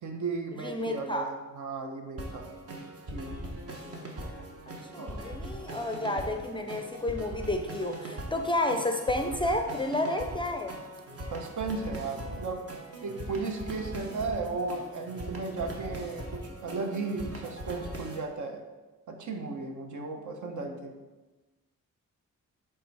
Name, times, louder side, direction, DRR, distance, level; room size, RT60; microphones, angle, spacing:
voice 1, 0.0-2.5 3.1-3.3 5.0-5.2 11.3-12.6 13.0-18.6 19.1-20.9, right 4 dB, 65° right, 4 dB, 1.0 m, -35 dB
voice 2, 0.5-1.3 4.9-10.8, left 1 dB, 15° left, 5 dB, 0.5 m, -31 dB
sound 1, 2.2-18.2, right 1 dB, 45° right, 1.2 m, -41 dB
7.9 x 3.6 x 4.7 m, 1.2 s
wide cardioid pair, 125°, 33 cm